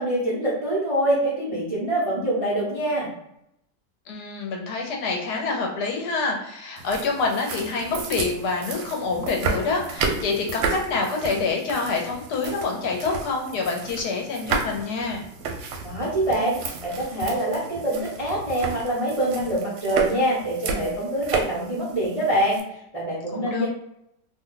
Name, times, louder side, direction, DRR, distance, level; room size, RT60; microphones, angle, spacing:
voice 1, 0.0-3.1 15.8-22.6 22.9-23.7, right 1 dB, 40° right, -7 dB, 0.5 m, -25 dB
voice 2, 4.1-15.2 23.3-23.7, left 4 dB, 75° left, 1 dB, 1.2 m, -27 dB
sound 1, 6.8-22.6, right 4 dB, 85° right, 1.2 m, -32 dB
2.9 x 2.2 x 3.7 m, 0.79 s
omnidirectional pair, 1.8 m